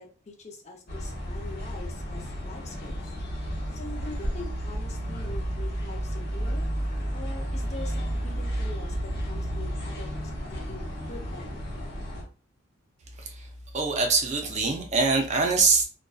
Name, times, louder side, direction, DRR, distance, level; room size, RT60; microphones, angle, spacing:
voice 1, 0.0-3.0 3.7-6.7 7.1-10.1 10.5-11.6, left 2 dB, 35° left, 1 dB, 0.6 m, -43 dB
sound 1, 0.9-12.2, equal, 50° left, 0.9 m, -32 dB
voice 2, 13.7-15.8, right 4 dB, 35° right, 3 dB, 0.5 m, -23 dB
2.5 x 2.2 x 2.3 m, 0.37 s
head